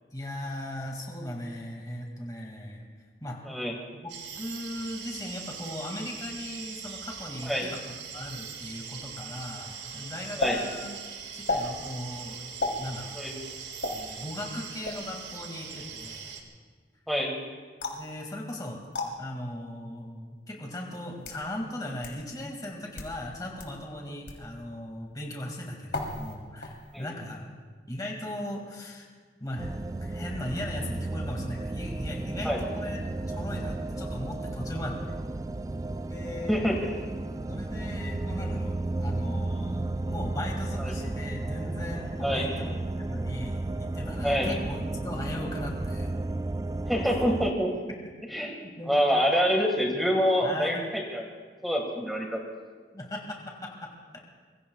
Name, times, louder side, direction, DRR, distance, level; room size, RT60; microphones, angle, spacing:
voice 1, 0.1-2.8 3.2-3.4 3.9-11.0 11.3-12.5 12.8-13.2 13.9-16.3 17.9-18.8 19.2-27.5 27.9-29.1 29.4-29.7 30.0-35.2 36.1-36.7 37.5-46.1 48.4-49.0 50.4-50.8 52.9-54.2, left 1 dB, 20° left, 0 dB, 2.2 m, -38 dB
sound 1, 4.1-16.4, right 6 dB, 90° right, 2.0 m, -41 dB
sound 2, 10.4-10.5 11.4-11.7 12.6-12.8 13.8-14.0 14.8-15.1 17.8-18.1 18.9-19.1 20.0-20.1 21.0-21.4 22.0-22.1 22.8-23.1 23.6-23.7 24.3-24.4 25.9-26.3 26.6-27.0, left 2 dB, 85° left, 3.3 m, -32 dB
sound 3, 29.6-47.5, right 2 dB, 20° right, 0.4 m, -33 dB
voice 2, 36.5-36.9 40.9-41.0 42.2-42.6 44.2-44.6 46.9-47.7 48.3-48.5 48.9-50.8 51.1-51.2 51.6-52.4, equal, ahead, -1 dB, 1.8 m, -26 dB
26.0 x 23.5 x 2.4 m, 1.5 s
head